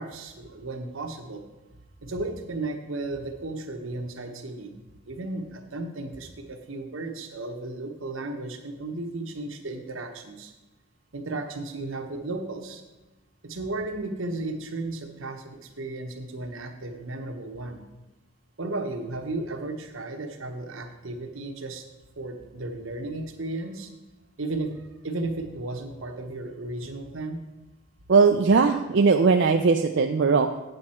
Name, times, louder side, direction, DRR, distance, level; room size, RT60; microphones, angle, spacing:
voice 1, 0.0-1.4 2.0-4.8 5.0-10.5 11.1-12.8 13.4-17.8 18.6-21.9 22.2-23.9 24.4-27.4, right 2 dB, 80° right, 4 dB, 1.1 m, -34 dB
voice 2, 28.1-30.6, right 4 dB, 60° right, 4 dB, 0.4 m, -19 dB
8.5 x 8.0 x 4.3 m, 1.1 s
head